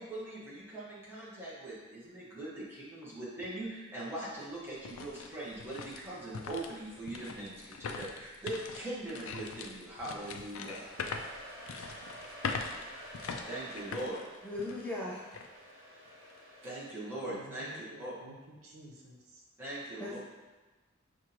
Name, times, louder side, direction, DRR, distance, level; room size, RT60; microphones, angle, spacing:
voice 1, 0.0-10.9 13.5-14.2 16.6-18.1 19.6-20.2, right 1 dB, 10° right, -9 dB, 1.2 m, -41 dB
sound 1, 3.4-3.5 4.0-14.9 15.3-15.5 16.1-16.4, left 5 dB, 75° left, 0.4 m, -42 dB
Domestic sounds home sounds, 10.4-17.1, right 1 dB, 45° right, 1.4 m, -50 dB
voice 2, 14.4-15.2 20.0-20.2, left 2 dB, 10° left, -6 dB, 0.4 m, -37 dB
voice 3, 17.2-19.4, right 1 dB, 80° right, -1 dB, 0.6 m, -52 dB
5.9 x 2.5 x 2.9 m, 1.2 s
head